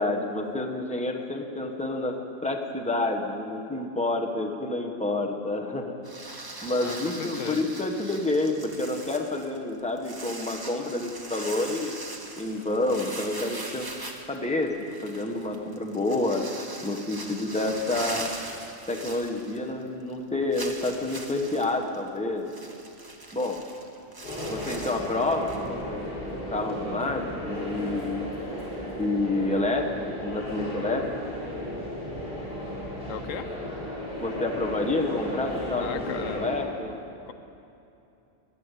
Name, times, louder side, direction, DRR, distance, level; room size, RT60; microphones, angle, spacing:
voice 1, 0.0-2.1 2.4-6.0 6.6-12.0 12.4-13.9 14.3-14.7 15.0-16.4 16.8-18.3 18.9-22.5 23.3-23.6 24.5-28.3 29.0-29.9 30.2-31.3 34.2-36.1 36.3-37.0, left 2 dB, 5° left, 2 dB, 1.1 m, -29 dB
sound 1, 6.0-19.8 20.1-20.2 20.5-25.7, right 2 dB, 20° right, 1.0 m, -40 dB
voice 2, 6.8-7.6 33.1-33.5 35.8-36.5 37.3-37.4, left 8 dB, 85° left, 11 dB, 1.1 m, -36 dB
sound 2, 24.2-36.6, left 1 dB, 40° left, 3.9 m, -35 dB
14.0 x 10.5 x 8.2 m, 2.7 s
omnidirectional pair, 1.3 m